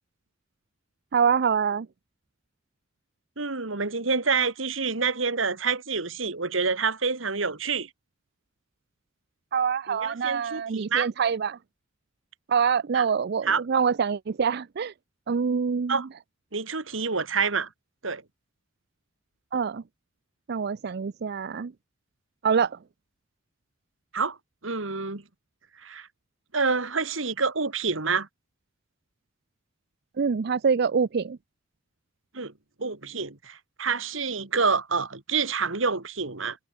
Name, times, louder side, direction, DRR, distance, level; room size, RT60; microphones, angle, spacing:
voice 1, 1.1-1.9 9.5-11.6 12.5-14.9 15.3-16.1 19.5-19.8 20.5-21.7 22.4-22.8 30.2-31.4, right 6 dB, 55° right, 0.5 m, -25 dB
voice 2, 3.4-7.9 9.9-11.1 12.9-13.0 13.5-13.6 15.9-16.1 16.5-17.7 18.0-18.2 24.1-24.4 24.6-25.2 25.8-26.1 26.5-28.3 32.3-32.5 32.8-36.6, right 5 dB, 85° right, 2.3 m, -27 dB
head